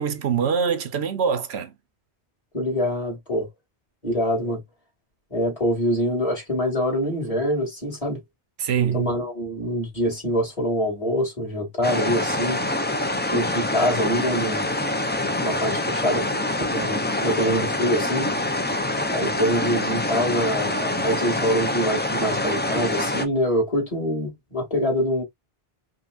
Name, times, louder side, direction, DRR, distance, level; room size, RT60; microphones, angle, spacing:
voice 1, 0.0-1.7 8.6-9.1, right 7 dB, 90° right, 1.1 m, -24 dB
voice 2, 2.5-3.5 4.0-4.6 5.3-8.2 8.9-12.6 13.3-14.7 15.4-16.4 16.7-18.3 19.1-25.2, equal, 35° left, 2.6 m, -25 dB
sound 1, 11.8-23.3, left 1 dB, 15° left, 0.4 m, -25 dB
5.3 x 2.4 x 2.5 m
omnidirectional pair, 1.0 m